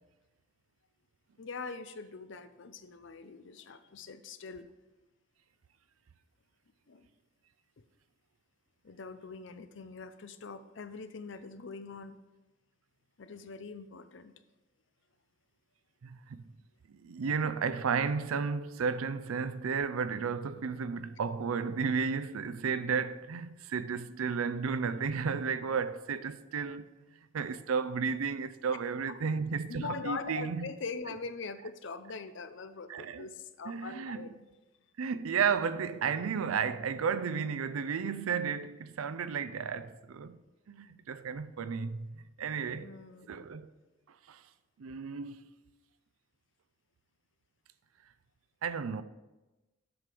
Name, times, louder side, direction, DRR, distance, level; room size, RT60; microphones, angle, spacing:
voice 1, 1.4-4.7 6.9-7.1 7.8-7.9 8.8-12.2 13.2-14.3 29.7-34.4 42.7-43.5, left 4 dB, 65° left, 0.5 m, -42 dB
voice 2, 16.0-16.5 16.9-26.9 27.3-30.7 32.9-33.3 33.7-34.3 35.0-40.4 40.7-42.9 43.3-43.7 44.1-44.4 44.8-45.4 48.6-49.0, right 6 dB, 90° right, 0.5 m, -33 dB
7.8 x 6.0 x 5.0 m
head